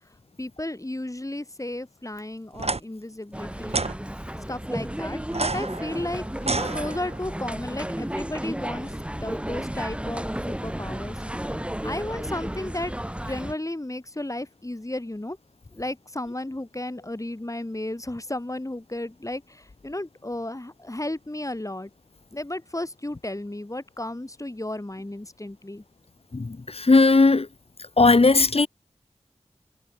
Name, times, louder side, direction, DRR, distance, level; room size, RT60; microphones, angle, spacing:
voice 1, 0.4-3.8 4.5-11.2 11.8-12.9 13.2-15.4 15.7-21.9 22.3-25.8, left 1 dB, 30° left, 5.5 m, -34 dB
sound 1, 2.5-2.8 3.7-3.9 5.3-7.3, right 3 dB, 60° right, 2.6 m, -29 dB
sound 2, 3.3-13.5, right 1 dB, 10° right, 2.0 m, -33 dB
voice 2, 26.3-27.5 28.0-28.7, left 3 dB, 60° left, 1.7 m, -17 dB
wide cardioid pair, 45°, 12 cm